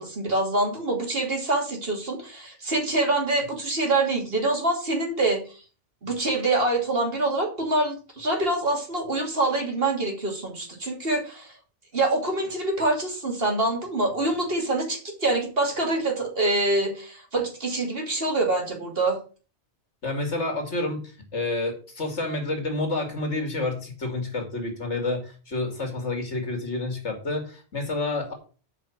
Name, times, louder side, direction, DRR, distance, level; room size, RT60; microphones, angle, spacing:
voice 1, 0.0-5.4 6.0-11.5 11.9-19.2, right 2 dB, 55° right, 1 dB, 2.8 m, -25 dB
voice 2, 20.0-28.3, left 2 dB, 80° left, 3 dB, 2.9 m, -29 dB
7.6 x 5.2 x 7.2 m, 0.37 s
omnidirectional pair, 1.2 m